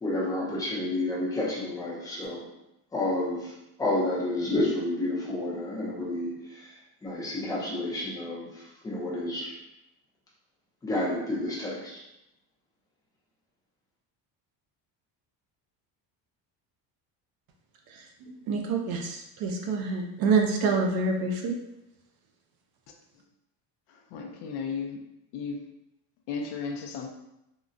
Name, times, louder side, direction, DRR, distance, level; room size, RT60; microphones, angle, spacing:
voice 1, 0.0-2.4 2.9-3.5 3.8-6.7 7.0-9.5 10.8-12.0, left 1 dB, 10° left, -6 dB, 0.4 m, -30 dB
voice 2, 17.9-21.6, right 4 dB, 50° right, 1 dB, 0.5 m, -27 dB
voice 3, 24.1-25.0 25.3-25.7 26.3-27.1, left 5 dB, 65° left, 3 dB, 0.5 m, -34 dB
3.8 x 2.1 x 2.5 m, 0.87 s
cardioid pair, 175°, 45 cm